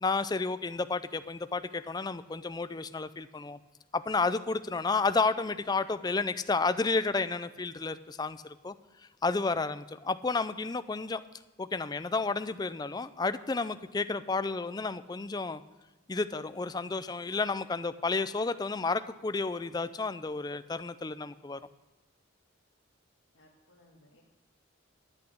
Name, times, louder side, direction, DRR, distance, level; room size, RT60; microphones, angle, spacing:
voice 1, 0.0-3.6 3.9-8.7 9.2-11.2 11.6-15.6 16.1-21.6, left 3 dB, 20° left, 12 dB, 0.4 m, -31 dB
voice 2, 23.3-24.2, left 1 dB, 85° left, -4 dB, 1.7 m, -61 dB
11.5 x 8.3 x 6.3 m, 1.1 s
head